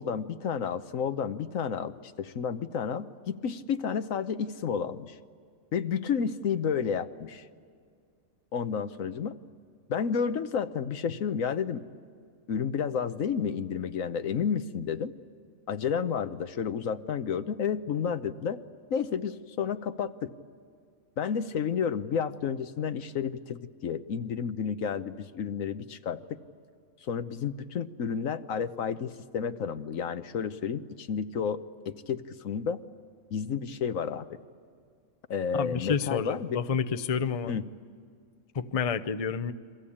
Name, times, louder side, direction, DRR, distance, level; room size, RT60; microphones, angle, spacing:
voice 1, 0.0-5.2 5.7-7.5 8.5-9.4 9.9-11.8 12.5-15.1 15.7-18.6 18.9-20.3 21.2-26.4 27.0-32.8 33.3-34.4 35.3-36.6 37.5-37.6, left 7 dB, 75° left, 10 dB, 1.3 m, -31 dB
voice 2, 35.5-37.6 38.5-39.5, left 6 dB, 35° left, 11 dB, 0.7 m, -29 dB
30.0 x 23.0 x 8.6 m, 2.1 s
omnidirectional pair, 1.4 m